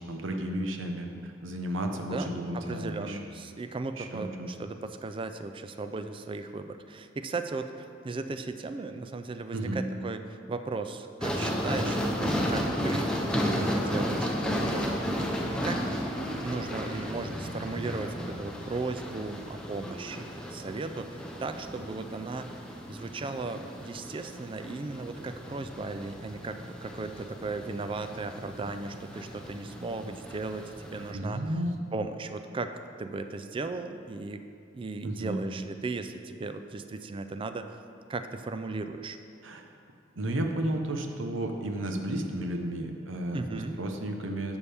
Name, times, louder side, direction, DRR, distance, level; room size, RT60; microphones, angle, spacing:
voice 1, 0.0-3.2 4.0-4.5 9.5-9.9 31.1-31.8 35.0-35.4 39.4-39.6 40.2-44.6, right 1 dB, 80° right, 4 dB, 0.8 m, -33 dB
voice 2, 2.5-7.7 8.0-14.3 14.7-14.8 15.4-15.8 16.4-22.5 22.9-31.5 31.9-32.7 33.0-34.4 34.7-37.7 38.1-39.2 43.3-43.8, right 3 dB, 25° right, 9 dB, 0.4 m, -36 dB
sound 1, 11.2-31.1, equal, 5° left, 0.7 m, -34 dB
11.0 x 7.1 x 3.4 m, 2.4 s
head